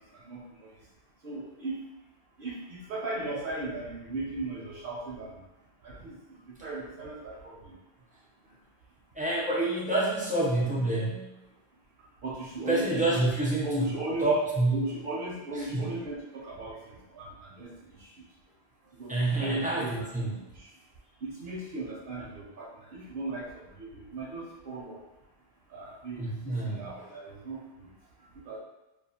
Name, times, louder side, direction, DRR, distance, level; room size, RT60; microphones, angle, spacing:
voice 1, 0.2-0.7 1.2-1.8 2.4-5.4 5.8-7.8 12.2-13.2 13.6-14.3 14.7-18.1 18.9-20.1 20.5-20.7 21.2-25.0 25.7-27.9 28.4-28.6, right 2 dB, 65° right, -3 dB, 0.7 m, -37 dB
voice 2, 9.1-11.4 12.7-13.9 14.2-14.8 15.5-16.0 19.1-20.4 22.1-22.3 26.2-27.1, right 2 dB, 10° right, -6 dB, 0.4 m, -28 dB
2.4 x 2.3 x 2.7 m, 0.98 s
omnidirectional pair, 1.0 m